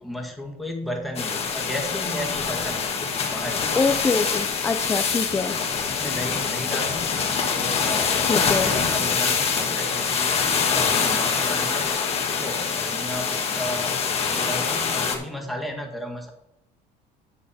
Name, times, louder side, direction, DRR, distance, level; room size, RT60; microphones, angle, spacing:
voice 1, 0.0-2.9 3.3-3.7 5.5-12.0 12.3-13.9 14.3-16.3, left 1 dB, ahead, 0 dB, 1.7 m, -34 dB
sound 1, 1.2-15.2, left 5 dB, 40° left, 1.5 m, -25 dB
voice 2, 3.7-5.5 8.2-8.7, left 4 dB, 15° left, 6 dB, 0.5 m, -24 dB
10.0 x 6.5 x 4.2 m, 0.86 s
cardioid pair, 140°, 17 cm